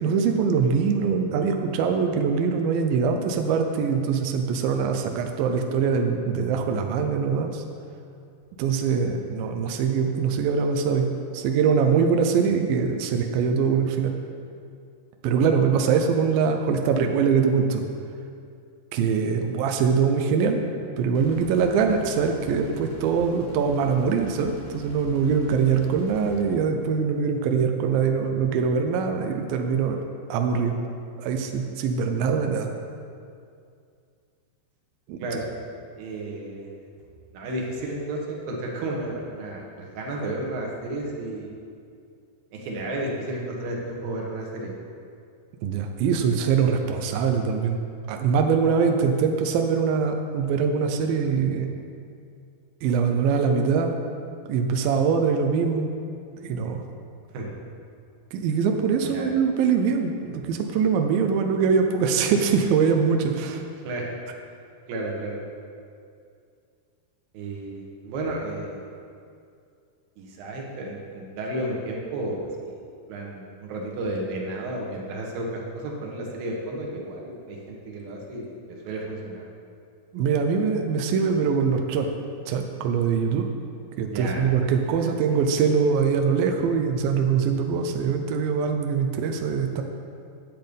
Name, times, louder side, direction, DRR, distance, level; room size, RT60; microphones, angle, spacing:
voice 1, 0.0-7.6 8.6-11.1 11.3-14.1 15.2-17.8 18.9-20.6 21.0-30.0 30.3-30.8 31.2-32.7 35.1-35.2 45.6-47.8 48.1-51.7 52.8-53.9 54.5-55.9 56.4-56.8 58.3-63.6 80.1-82.1 82.5-83.5 84.0-89.8, right 6 dB, 85° right, 4 dB, 2.0 m, -23 dB
sound 1, 21.1-26.4, left 1 dB, 75° left, 0.9 m, -42 dB
voice 2, 36.0-36.7 37.3-41.5 42.5-44.7 57.3-57.5 59.1-59.3 63.8-64.1 64.9-65.4 67.3-68.9 70.2-72.7 73.1-79.4 84.1-84.4 84.9-85.4, right 1 dB, 65° right, -1 dB, 2.8 m, -32 dB
11.0 x 7.8 x 5.2 m, 2.4 s
omnidirectional pair, 5.0 m